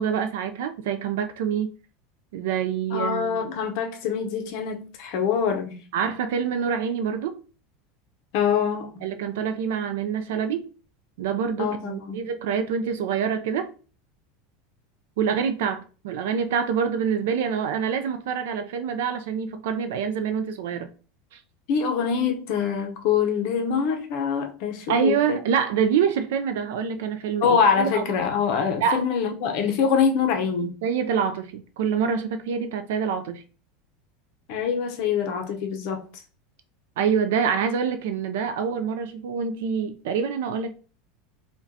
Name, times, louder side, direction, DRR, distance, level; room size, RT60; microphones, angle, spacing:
voice 1, 0.0-1.7 2.3-3.5 5.9-7.4 9.0-10.7 11.2-13.7 15.2-20.9 21.3-21.4 24.9-28.0 28.8-29.0 30.8-33.4 37.0-40.7, right 7 dB, 70° right, 0.4 m, -26 dB
voice 2, 2.9-5.8 8.3-9.0 11.6-12.2 21.7-25.4 27.4-30.7 34.5-36.1, left 6 dB, 45° left, 0.6 m, -24 dB
4.8 x 2.2 x 2.7 m
supercardioid pair, 180°, 0 cm